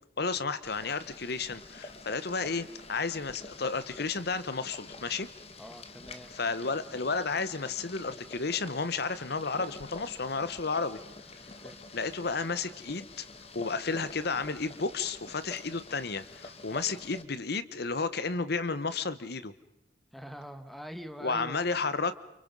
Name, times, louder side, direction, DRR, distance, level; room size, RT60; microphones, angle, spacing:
voice 1, 0.2-5.3 6.3-11.0 11.9-13.3 13.5-19.5 21.2-22.1, left 4 dB, 65° left, 13 dB, 1.1 m, -32 dB
Boiling, 0.6-17.2, left 3 dB, 35° left, 1.8 m, -47 dB
voice 2, 5.6-6.7 11.6-11.8 20.1-21.6, equal, ahead, 8 dB, 1.7 m, -44 dB
29.5 x 29.5 x 5.5 m, 0.89 s
head